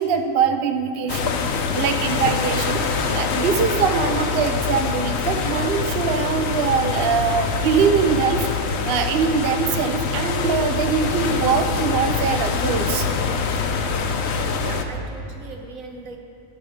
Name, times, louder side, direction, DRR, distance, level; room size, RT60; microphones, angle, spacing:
voice 1, 0.0-1.3 1.7-8.5 8.9-13.1, right 6 dB, 60° right, 6 dB, 0.7 m, -22 dB
sound 1, 1.1-14.8, left 5 dB, 60° left, 0.8 m, -24 dB
voice 2, 14.5-16.2, right 3 dB, 80° right, 2 dB, 1.4 m, -38 dB
11.0 x 5.2 x 6.3 m, 2.5 s
omnidirectional pair, 1.4 m